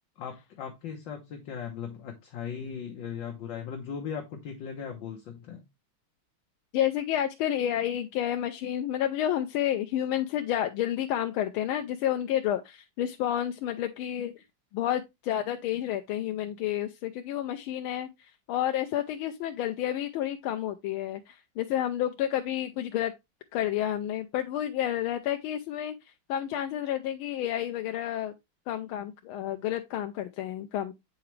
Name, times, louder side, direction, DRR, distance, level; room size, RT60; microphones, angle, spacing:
voice 1, 0.2-5.6, left 7 dB, 70° left, 1.7 m, -38 dB
voice 2, 6.7-14.4 14.7-23.1 23.5-25.9 26.3-28.3 28.7-30.9, left 11 dB, 85° left, 1.5 m, -30 dB
8.1 x 4.8 x 3.1 m
omnidirectional pair, 2.2 m